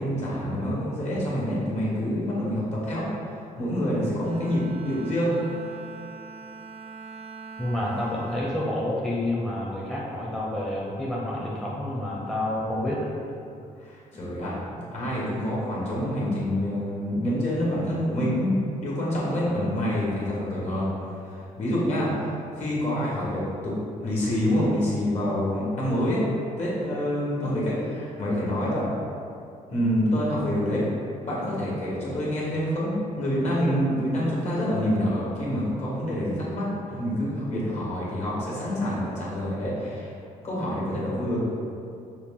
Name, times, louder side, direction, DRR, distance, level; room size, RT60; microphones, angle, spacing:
voice 1, 0.0-5.3 13.8-20.8 21.2-23.7 24.0-26.3 26.6-28.9 29.7-30.8 31.2-36.6 36.9-40.1 40.4-41.4, equal, 55° left, -6 dB, 1.4 m, -27 dB
Bowed string instrument, 4.2-9.8, right 5 dB, 45° right, 0.5 m, -43 dB
voice 2, 7.6-13.1, left 1 dB, 5° left, -6 dB, 0.6 m, -29 dB
5.7 x 2.2 x 3.6 m, 2.5 s
cardioid pair, 100°, 14 cm